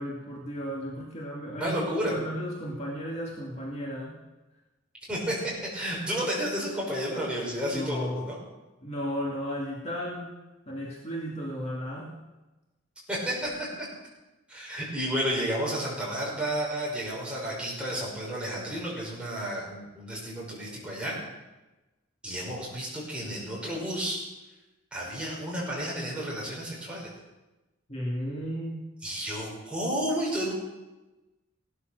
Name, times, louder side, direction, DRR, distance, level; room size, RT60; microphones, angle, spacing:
voice 1, 0.0-4.2 7.7-8.4 8.8-10.3 10.7-12.2 27.9-28.9, equal, 30° left, -3 dB, 2.3 m, -34 dB
voice 2, 1.6-2.1 5.1-8.4 13.1-13.5 14.5-21.2 22.2-24.2 24.9-27.1 29.0-30.5, equal, 5° right, -5 dB, 6.0 m, -31 dB
17.0 x 12.0 x 6.7 m, 1.1 s
head